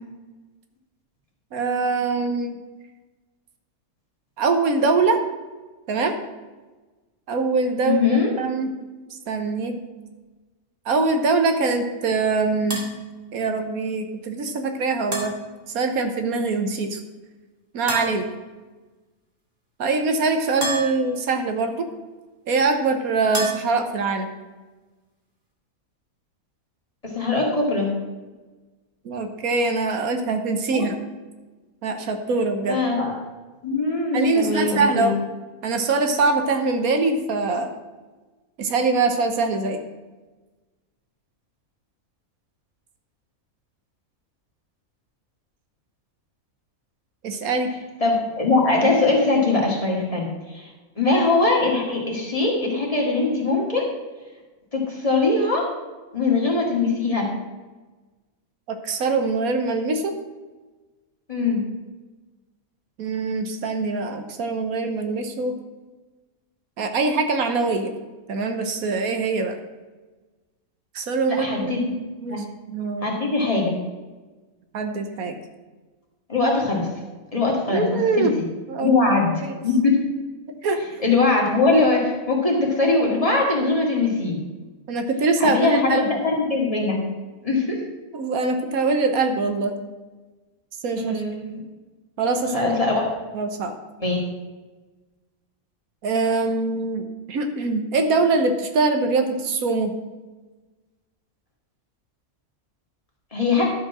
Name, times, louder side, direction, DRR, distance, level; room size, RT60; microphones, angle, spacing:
voice 1, 1.5-2.6 4.4-5.2 5.9-6.2 7.3-8.0 8.4-8.7 9.3-9.8 10.9-12.8 13.3-15.4 15.7-17.0 17.7-18.3 19.8-21.9 22.5-24.3 29.0-31.0 31.8-32.8 34.1-35.2 35.6-37.8 38.6-39.8 47.2-47.7 58.7-60.2 63.0-65.6 66.8-67.9 68.3-69.6 70.9-71.9 72.2-73.2 74.7-75.4 77.7-78.4 78.7-78.9 80.6-81.0 84.9-86.2 88.1-89.7 90.8-91.2 92.2-92.7 93.3-93.7 96.0-99.9, right 3 dB, 80° right, 6 dB, 1.4 m, -23 dB
voice 2, 7.8-8.3 27.0-27.9 30.7-30.8 32.6-33.1 33.6-35.1 48.0-50.7 51.0-53.8 54.7-55.6 56.1-57.3 61.3-61.6 71.3-72.0 72.3-72.4 73.0-73.7 76.3-76.9 77.3-77.8 78.2-78.3 78.8-79.3 79.6-80.0 81.0-84.4 85.4-87.0 87.4-87.8 91.0-91.4 92.5-93.0 94.0-94.2 103.3-103.7, left 3 dB, 25° left, -2 dB, 2.1 m, -21 dB
sound 1, 12.7-12.9 15.1-15.4 17.9-18.2 20.6-21.1 23.3-23.8, right 2 dB, 40° right, 2.0 m, -28 dB
11.5 x 5.2 x 6.1 m, 1.2 s
omnidirectional pair, 1.5 m